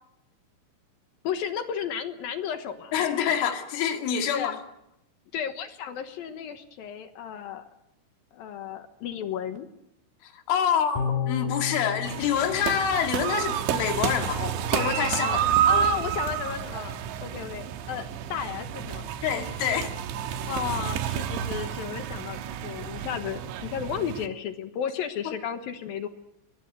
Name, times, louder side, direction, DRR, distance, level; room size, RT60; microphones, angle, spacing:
voice 1, 1.2-3.0 4.3-4.6 5.3-7.6 8.3-9.7 15.2-15.4 15.7-19.1 20.5-26.1, left 8 dB, 70° left, 9 dB, 2.4 m, -33 dB
voice 2, 2.9-4.5 10.2-11.0 11.3-15.9 19.2-19.9, left 8 dB, 85° left, 5 dB, 4.7 m, -27 dB
sound 1, 10.9-14.3 14.6-14.7, left 7 dB, 50° left, 5.2 m, -33 dB
sound 2, 12.1-24.3, right 10 dB, 75° right, 3.5 m, -29 dB
23.0 x 22.5 x 7.9 m, 0.83 s
omnidirectional pair, 5.4 m